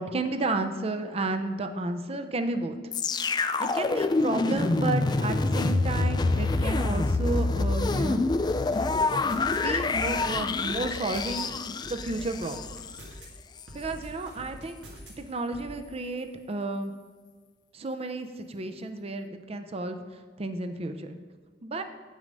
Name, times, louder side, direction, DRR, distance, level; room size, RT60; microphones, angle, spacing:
voice 1, 0.0-2.8 3.6-8.2 9.2-11.5 11.9-12.6 12.9-13.0 13.7-14.8 15.2-16.9 17.7-21.2 21.6-21.8, right 2 dB, 35° right, 8 dB, 0.5 m, -32 dB
sound 1, 2.9-13.0 13.6-13.7, left 3 dB, 25° left, 0.3 m, -26 dB
sound 2, 8.4-9.6 10.0-11.4 11.8-13.3 13.7-15.1 15.5-15.7, right 1 dB, 90° right, 2.0 m, -46 dB
8.7 x 6.4 x 5.3 m, 1.5 s
head